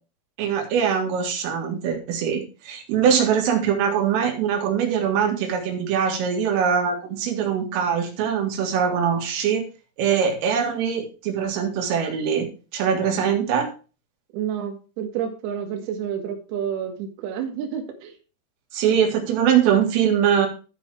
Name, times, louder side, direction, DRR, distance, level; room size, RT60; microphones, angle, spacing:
voice 1, 0.4-9.7 10.0-12.5 12.7-13.7 18.7-20.5, right 7 dB, 80° right, 2 dB, 4.4 m, -22 dB
voice 2, 14.3-18.1, right 8 dB, 60° right, 2 dB, 3.3 m, -29 dB
13.5 x 4.8 x 4.8 m, 0.34 s
omnidirectional pair, 5.8 m